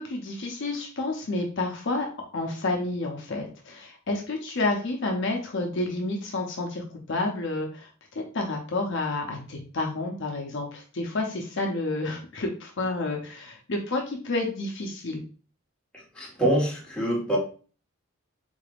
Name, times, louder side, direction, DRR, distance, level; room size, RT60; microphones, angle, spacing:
voice 1, 0.0-2.1 2.3-7.9 8.3-15.2, left 2 dB, 55° left, 1 dB, 0.6 m, -30 dB
voice 2, 16.1-17.4, right 1 dB, 5° left, -5 dB, 1.2 m, -25 dB
3.8 x 3.3 x 2.4 m, 0.38 s
head